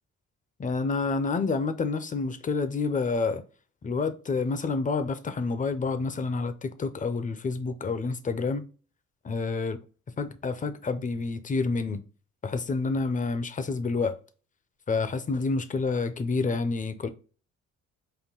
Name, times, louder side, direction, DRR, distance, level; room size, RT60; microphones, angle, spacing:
voice 1, 0.6-3.4 3.8-8.6 9.2-9.8 10.2-12.0 12.4-14.2 14.9-17.1, left 4 dB, 25° left, 0.6 m, -28 dB
5.5 x 2.2 x 3.8 m
cardioid pair, 90°, 30 cm